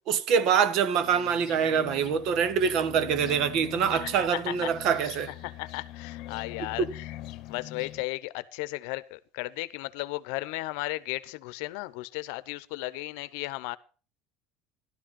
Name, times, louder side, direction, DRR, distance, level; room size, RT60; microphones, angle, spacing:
voice 1, 0.1-5.3 6.8-6.9, right 7 dB, 55° right, 1.2 m, -25 dB
sound 1, 0.9-8.0, left 15 dB, 55° left, 1.0 m, -43 dB
voice 2, 3.9-7.1 7.5-13.8, left 20 dB, 75° left, 0.7 m, -35 dB
13.0 x 12.5 x 4.2 m
cardioid pair, 145°, 0 cm